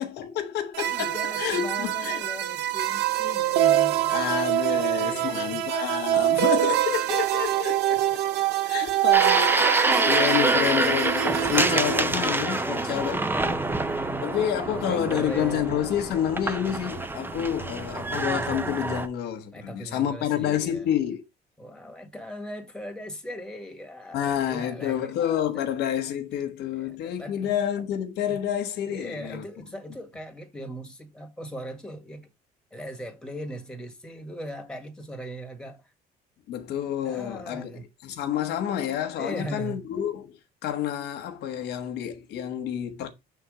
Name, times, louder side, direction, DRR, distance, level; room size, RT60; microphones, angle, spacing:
voice 1, 0.0-2.2 4.1-8.0 8.7-13.2 13.4-13.6 14.2-21.2 24.1-29.4 36.5-37.7 38.0-40.3 40.6-43.1, left 10 dB, 80° left, 1.1 m, -29 dB
sound 1, 0.7-12.0, right 13 dB, 85° right, 0.7 m, -25 dB
voice 2, 0.9-5.6 12.5-14.3 14.6-15.8 19.5-20.9 21.6-25.2 26.7-27.5 28.8-32.3 32.7-35.9 37.0-37.8 39.2-39.8, equal, 5° left, 1.7 m, -39 dB
sound 2, 9.1-19.1, right 2 dB, 10° right, 0.7 m, -26 dB
5.8 x 3.6 x 4.9 m
cardioid pair, 110°, 17 cm